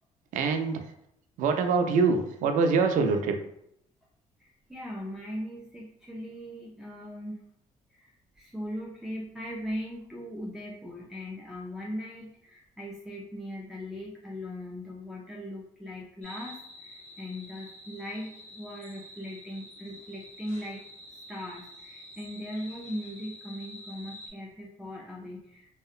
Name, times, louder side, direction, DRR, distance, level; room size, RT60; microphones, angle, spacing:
voice 1, 0.3-0.8 1.4-3.4, right 4 dB, 75° right, 6 dB, 0.4 m, -24 dB
voice 2, 4.4-7.5 7.9-20.8 21.1-25.7, equal, 5° right, -5 dB, 0.4 m, -39 dB
sound 1, 16.2-24.3, left 1 dB, 55° left, 0.9 m, -48 dB
2.7 x 2.1 x 2.4 m, 0.76 s
cardioid pair, 105°, 13 cm